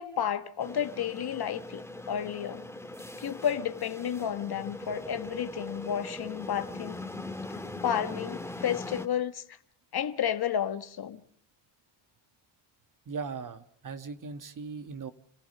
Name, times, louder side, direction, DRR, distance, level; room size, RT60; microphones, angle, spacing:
voice 1, 0.0-2.6 3.2-7.0 7.8-9.4 9.9-11.2, left 9 dB, 50° left, 1.4 m, -31 dB
sound 1, 0.6-9.1, left 2 dB, 5° left, 2.2 m, -40 dB
voice 2, 13.1-15.1, right 5 dB, 40° right, 1.8 m, -39 dB
29.5 x 15.5 x 6.7 m
supercardioid pair, 65°, 48 cm